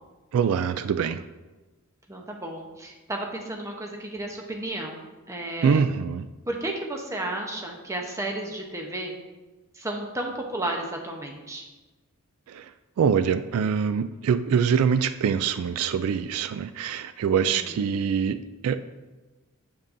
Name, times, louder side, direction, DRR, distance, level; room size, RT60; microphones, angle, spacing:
voice 1, 0.3-1.2 5.6-6.3 12.5-12.7 13.0-18.8, right 7 dB, 80° right, 13 dB, 0.3 m, -24 dB
voice 2, 2.1-5.9 6.5-9.1 9.8-11.6 17.4-17.7, right 1 dB, 15° right, 1 dB, 0.8 m, -33 dB
7.3 x 7.0 x 2.6 m, 1.2 s
head